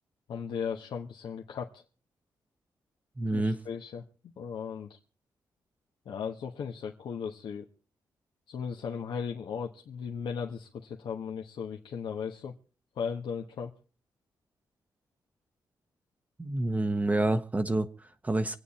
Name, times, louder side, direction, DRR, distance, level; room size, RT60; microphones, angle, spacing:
voice 1, 0.3-1.8 3.3-5.0 6.0-7.7 8.5-12.5 13.0-13.7, left 6 dB, 80° left, 1 dB, 1.3 m, -37 dB
voice 2, 3.2-3.6 16.4-18.6, right 2 dB, 20° right, 8 dB, 0.8 m, -28 dB
26.0 x 8.9 x 4.2 m, 0.38 s
wide cardioid pair, 115°, 8 cm